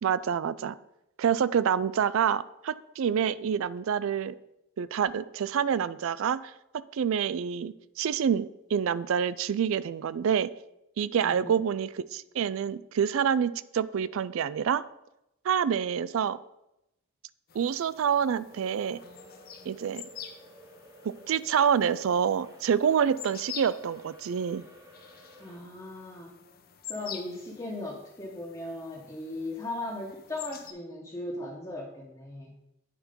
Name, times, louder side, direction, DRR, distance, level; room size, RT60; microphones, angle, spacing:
voice 1, 0.0-0.8 1.2-4.3 4.8-10.5 11.0-14.8 15.4-16.4 17.5-19.0 19.7-20.0 21.0-24.6, right 7 dB, 65° right, 17 dB, 0.3 m, -27 dB
voice 2, 11.2-11.6 25.4-26.3 26.9-32.6, left 2 dB, 15° left, -5 dB, 1.1 m, -38 dB
sound 1, 17.5-30.7, left 9 dB, 40° left, 0.6 m, -47 dB
sound 2, 18.5-25.6, equal, 15° right, 0.9 m, -53 dB
8.7 x 4.4 x 5.1 m, 0.87 s
head